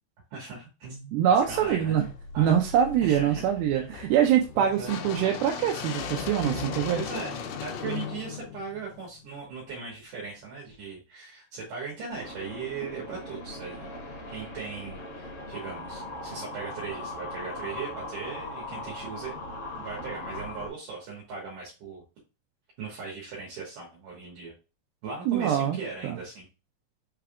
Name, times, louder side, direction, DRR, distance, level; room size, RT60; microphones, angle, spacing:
voice 1, 0.3-2.0 2.3-2.5 3.0-3.4 3.7-3.9 4.5-5.0 6.9-13.9 14.3-19.4 19.7-22.0 22.8-24.5 25.0-26.5, right 5 dB, 70° right, -4 dB, 2.8 m, -38 dB
voice 2, 1.1-2.1 2.4-7.0 25.3-25.8 26.0-26.2, right 9 dB, 85° right, 1 dB, 2.4 m, -24 dB
sound 1, 1.5-9.5, left 6 dB, 80° left, 1.9 m, -38 dB
sound 2, 12.1-20.7, left 2 dB, 50° left, 2.0 m, -39 dB
5.7 x 3.5 x 2.3 m, 0.31 s
omnidirectional pair, 4.2 m